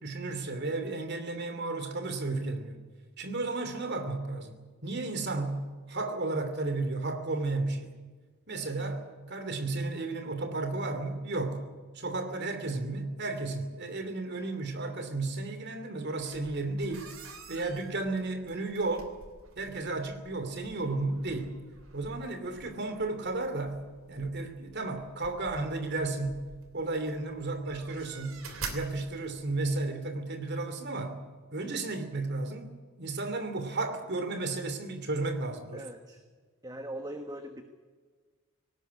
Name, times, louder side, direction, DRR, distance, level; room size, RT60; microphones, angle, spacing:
voice 1, 0.0-2.8 3.2-4.5 4.8-8.0 8.5-11.7 11.9-17.1 17.5-19.1 19.6-21.6 21.9-23.8 24.1-26.4 26.7-28.4 28.7-31.2 31.5-32.7 33.0-35.8, right 2 dB, 50° right, 8 dB, 2.9 m, -33 dB
sound 1, 16.2-29.8, right 4 dB, 75° right, 3.1 m, -48 dB
voice 2, 35.7-36.2 36.6-37.6, right 1 dB, 20° right, 6 dB, 1.4 m, -40 dB
19.0 x 17.5 x 9.7 m, 1.4 s
head